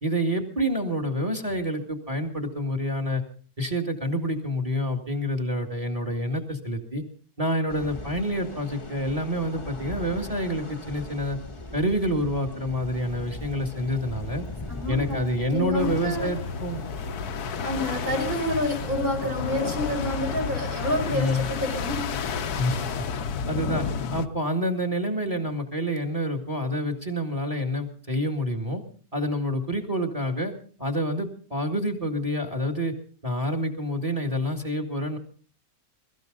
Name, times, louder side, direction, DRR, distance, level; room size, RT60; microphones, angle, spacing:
voice 1, 0.0-3.2 3.6-7.0 7.4-11.4 11.7-14.4 14.9-16.8 21.1-21.5 22.6-23.1 23.5-23.9 24.1-28.8 29.1-30.5 30.8-32.9 33.2-35.2, equal, 20° right, 5 dB, 2.0 m, -27 dB
sound 1, 7.7-23.1, left 2 dB, 20° left, 1.2 m, -40 dB
Thunder / Rain, 12.9-24.1, left 5 dB, 85° left, 2.5 m, -41 dB
voice 2, 14.7-15.2 15.5-16.3 17.6-22.1, left 1 dB, 55° right, 2 dB, 5.0 m, -28 dB
sound 2, 15.8-24.3, left 6 dB, 65° left, 1.4 m, -32 dB
23.5 x 14.0 x 3.9 m, 0.42 s
omnidirectional pair, 1.9 m